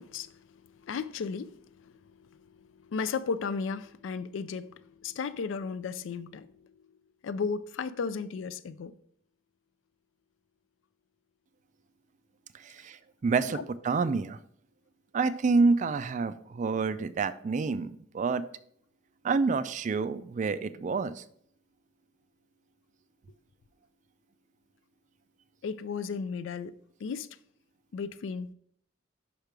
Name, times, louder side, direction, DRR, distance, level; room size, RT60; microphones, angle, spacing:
voice 1, 0.0-1.9 2.3-6.5 7.2-8.9 13.5-13.6 25.6-26.7 27.0-27.3 27.9-28.5, left 5 dB, 70° left, 0.4 m, -35 dB
voice 2, 12.6-14.4 15.1-18.5 19.2-21.2, right 4 dB, 40° right, 0.3 m, -28 dB
5.5 x 5.1 x 4.7 m
head